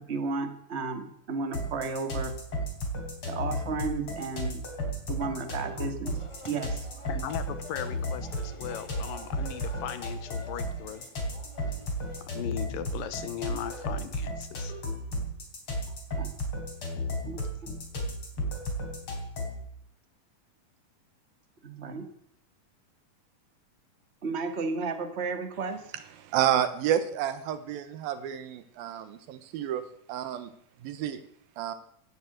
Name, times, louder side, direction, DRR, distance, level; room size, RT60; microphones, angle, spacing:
voice 1, 0.1-2.3 3.3-4.6 5.1-6.2 6.5-6.9 16.2-16.3 17.3-17.7 21.6-22.0 24.2-25.8, right 4 dB, 30° right, 7 dB, 1.3 m, -33 dB
sound 1, 1.5-19.7, equal, 35° left, 4.2 m, -34 dB
sound 2, 6.0-12.2, left 1 dB, 15° left, 1.3 m, -49 dB
voice 2, 7.1-11.0 12.3-14.7, left 10 dB, 75° left, 12 dB, 2.7 m, -38 dB
voice 3, 26.2-30.5 30.8-31.2 31.6-31.7, right 10 dB, 80° right, 11 dB, 2.9 m, -30 dB
17.0 x 10.5 x 8.0 m, 0.66 s
omnidirectional pair, 4.2 m